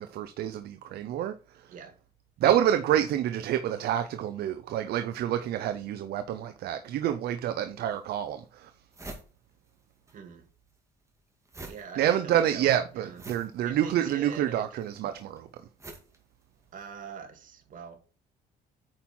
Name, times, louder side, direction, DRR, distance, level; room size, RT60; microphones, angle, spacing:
voice 1, 0.0-1.7 2.4-8.7 12.0-15.5, right 11 dB, 70° right, 0.8 m, -28 dB
sound 1, 7.7-7.8 8.3-8.4 8.6-10.2 10.4-17.0, right 2 dB, 15° right, 2.2 m, -47 dB
voice 2, 10.1-10.5 11.6-12.7 12.9-13.2 13.6-14.7 16.7-18.0, right 6 dB, 50° right, 2.4 m, -43 dB
9.1 x 5.5 x 4.4 m
cardioid pair, 110°, 17 cm